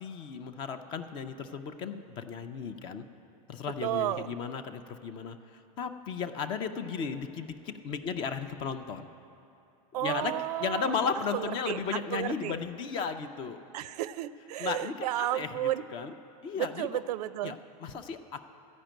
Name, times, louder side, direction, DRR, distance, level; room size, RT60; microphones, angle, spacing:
voice 1, 0.0-3.0 3.5-5.4 5.8-9.1 10.0-10.3 10.6-13.6 14.6-16.1 16.4-16.9 17.4-18.5, left 6 dB, 25° left, 10 dB, 0.4 m, -35 dB
voice 2, 3.8-4.3 9.9-10.9 11.3-12.6 13.7-15.8 16.6-17.6, right 13 dB, 85° right, 16 dB, 0.4 m, -32 dB
13.5 x 5.1 x 8.9 m, 2.8 s
supercardioid pair, 165°, 20 cm